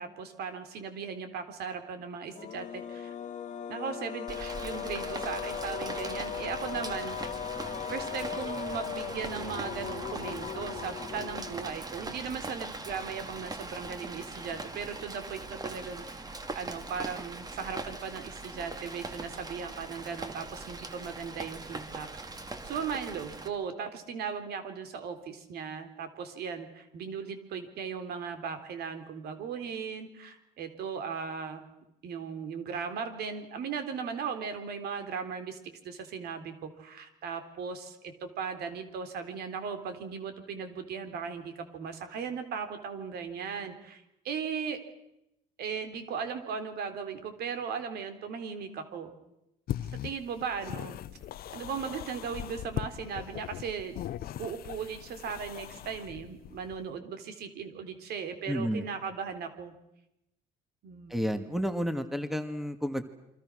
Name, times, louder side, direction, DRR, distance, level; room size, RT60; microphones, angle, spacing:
voice 1, 0.0-3.2 3.7-7.2 7.9-22.1 22.6-31.6 32.0-35.6 35.8-44.8 45.6-49.1 50.0-51.0 51.5-54.0 54.4-59.7 60.8-61.2, right 6 dB, 70° right, 8 dB, 3.7 m, -37 dB
sound 1, 2.3-11.7, left 8 dB, 45° left, 1.4 m, -38 dB
Rain, 4.3-23.5, right 2 dB, 20° right, 2.5 m, -41 dB
sound 2, 49.7-56.9, left 12 dB, 65° left, 0.9 m, -40 dB
voice 2, 58.5-58.8 61.1-63.0, equal, ahead, 9 dB, 1.9 m, -31 dB
28.5 x 24.5 x 6.4 m, 0.86 s
cardioid pair, 110°, 17 cm